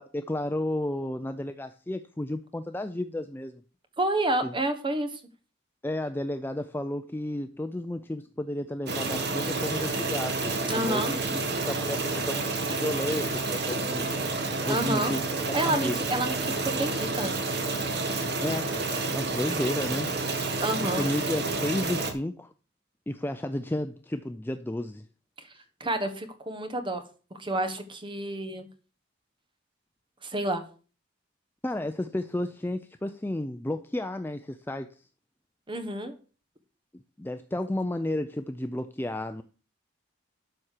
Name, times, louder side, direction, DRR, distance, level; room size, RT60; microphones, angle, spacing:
voice 1, 0.0-3.6 4.4-4.5 5.8-11.4 11.7-14.1 14.7-15.2 15.6-16.0 18.4-18.8 19.1-20.1 20.8-22.5 23.1-25.1 31.6-35.0 36.9-39.4, left 1 dB, 10° left, 8 dB, 0.4 m, -32 dB
voice 2, 4.0-5.2 10.7-11.1 14.7-15.1 15.5-17.3 20.6-21.1 25.8-27.0 27.4-28.7 30.2-30.6 35.7-36.1, right 1 dB, 25° right, 8 dB, 1.2 m, -29 dB
sound 1, 8.9-22.1, right 3 dB, 55° right, 1.7 m, -29 dB
12.0 x 4.3 x 6.6 m, 0.37 s
head